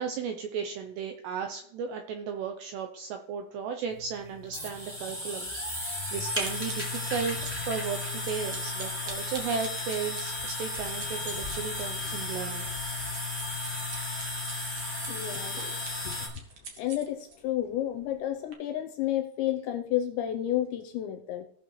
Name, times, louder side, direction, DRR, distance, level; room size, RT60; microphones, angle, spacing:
voice 1, 0.0-7.4 7.6-8.0 8.3-12.7, right 6 dB, 85° right, 5 dB, 2.5 m, -35 dB
sound 1, 3.9-16.3, left 2 dB, 5° right, 2.0 m, -34 dB
sound 2, 5.7-17.4 18.0-18.2 18.5-18.6, right 4 dB, 55° right, 2.0 m, -45 dB
voice 2, 15.1-15.7 16.0-16.4 16.8-21.4, left 12 dB, 85° left, 5 dB, 2.7 m, -31 dB
18.0 x 6.4 x 3.2 m, 0.72 s
omnidirectional pair, 5.8 m